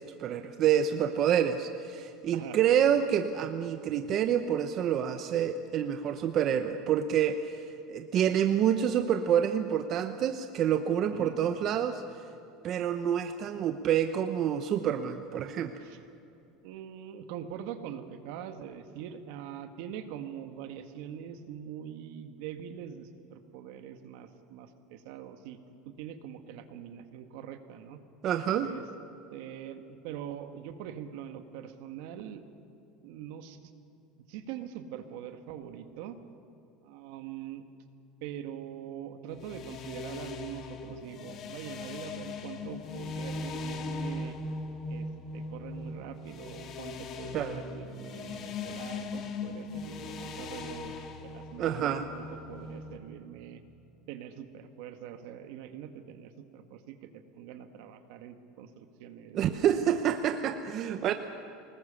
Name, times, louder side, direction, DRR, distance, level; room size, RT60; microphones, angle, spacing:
voice 1, 0.2-12.0 12.6-15.7 28.2-28.7 47.3-47.6 51.6-52.1 59.3-61.1, right 9 dB, 40° right, 8 dB, 0.9 m, -28 dB
voice 2, 16.6-25.6 25.9-28.0 28.6-28.8 29.3-32.4 33.0-33.7 34.3-36.2 36.8-37.7 38.2-44.4 44.9-45.1 45.3-50.9 51.2-53.6 54.1-59.6, right 9 dB, 70° right, 7 dB, 1.8 m, -43 dB
sound 1, 39.3-53.0, left 3 dB, 40° left, 2.0 m, -39 dB
25.0 x 20.0 x 7.1 m, 2.8 s
supercardioid pair, 150°, 0 cm